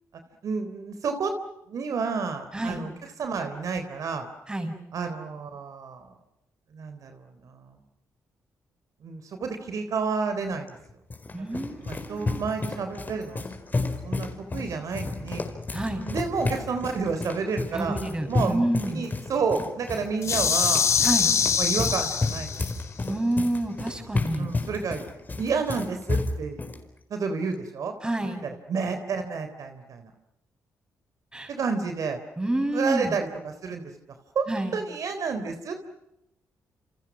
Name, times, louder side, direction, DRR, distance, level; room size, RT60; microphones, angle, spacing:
voice 1, 0.4-1.3 1.7-4.3 4.9-6.1 6.7-7.8 9.0-10.7 11.8-15.4 16.1-18.0 18.3-18.6 18.9-20.9 21.6-22.6 24.3-25.0 25.4-26.6 27.1-27.9 28.4-30.1 31.5-32.2 32.7-33.8 34.3-34.5 34.7-35.8, right 5 dB, 65° right, 7 dB, 3.7 m, -30 dB
sound 1, 10.7-26.8, left 3 dB, 30° left, 4.8 m, -32 dB
voice 2, 11.3-12.4 15.7-16.1 17.7-19.0 21.0-21.4 23.0-24.5 28.0-28.4 31.3-31.5 32.4-33.2 34.5-34.8, right 1 dB, 15° right, 6 dB, 7.2 m, -28 dB
sound 2, 20.2-22.8, left 6 dB, 55° left, 3.3 m, -24 dB
29.0 x 29.0 x 6.3 m, 0.85 s
cardioid pair, 95°, 6 cm